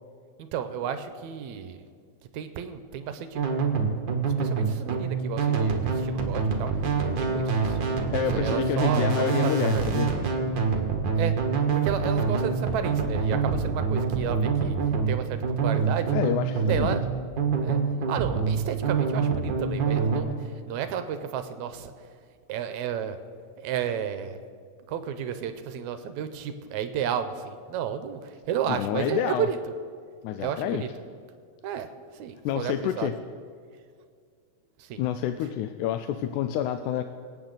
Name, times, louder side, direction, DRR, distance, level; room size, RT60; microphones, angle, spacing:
voice 1, 0.4-1.8 2.3-3.4 3.8-3.9 4.4-6.7 7.2-7.8 8.3-9.9 11.2-11.4 11.7-14.8 15.1-16.2 16.7-17.1 17.6-17.8 18.1-22.1 22.5-23.2 23.6-24.4 24.9-29.6 30.4-30.9 31.6-33.1 34.8-35.0, right 8 dB, 75° right, 10 dB, 1.9 m, -32 dB
sound 1, 3.3-20.2, right 5 dB, 50° right, 1.5 m, -26 dB
voice 2, 8.1-10.1 16.1-17.0 28.7-29.5 30.2-30.8 32.5-33.2 35.0-37.0, left 11 dB, 80° left, 9 dB, 2.0 m, -28 dB
26.0 x 8.9 x 4.0 m, 2.1 s
omnidirectional pair, 3.5 m